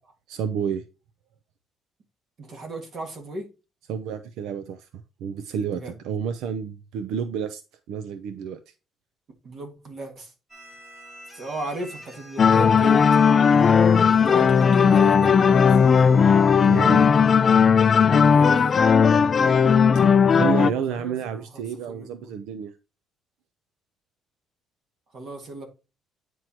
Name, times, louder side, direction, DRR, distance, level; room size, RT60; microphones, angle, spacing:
voice 1, 0.3-0.8 3.9-4.9 5.2-7.6 7.9-8.6 16.6-17.1 19.9-20.0 20.4-22.7, right 7 dB, 75° right, 0.6 m, -30 dB
voice 2, 2.4-3.5 5.7-5.9 9.4-10.3 11.3-13.0 14.0-16.2 18.2-18.8 20.5-22.1 25.1-25.7, right 2 dB, 40° right, 1.9 m, -36 dB
sound 1, 10.5-17.1, equal, 15° right, 2.0 m, -45 dB
sound 2, 12.4-20.7, left 6 dB, 30° left, 0.3 m, -17 dB
9.3 x 4.6 x 2.9 m
cardioid pair, 155°, 0 cm